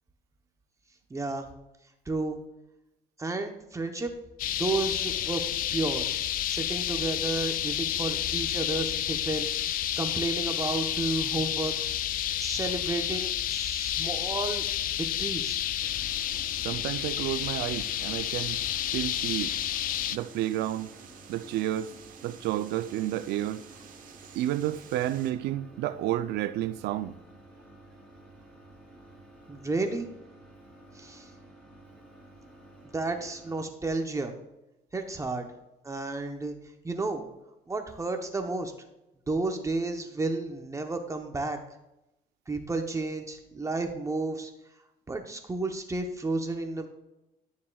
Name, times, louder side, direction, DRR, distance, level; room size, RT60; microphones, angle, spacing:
voice 1, 1.1-1.5 2.1-2.4 3.2-4.1 4.6-5.4 5.7-6.1 6.5-9.5 10.0-11.7 12.4-14.6 15.0-15.6 29.5-30.1 30.9-31.3 32.9-34.3 34.9-35.5 35.8-36.5 36.8-37.2 37.7-38.7 39.3-41.6 42.5-44.5 45.1-46.9, right 3 dB, 20° right, 0.8 m, -32 dB
sound 1, 4.4-20.2, left 12 dB, 55° left, 0.4 m, -30 dB
sound 2, 15.8-33.7, right 2 dB, 5° left, 3.3 m, -53 dB
voice 2, 16.6-18.6 18.9-19.5 20.1-20.9 21.3-21.9 22.2-23.6 24.4-27.1, right 13 dB, 80° right, 0.4 m, -30 dB
sound 3, 17.5-25.3, right 7 dB, 55° right, 1.1 m, -51 dB
12.0 x 7.2 x 2.3 m
cardioid pair, 110°, 17 cm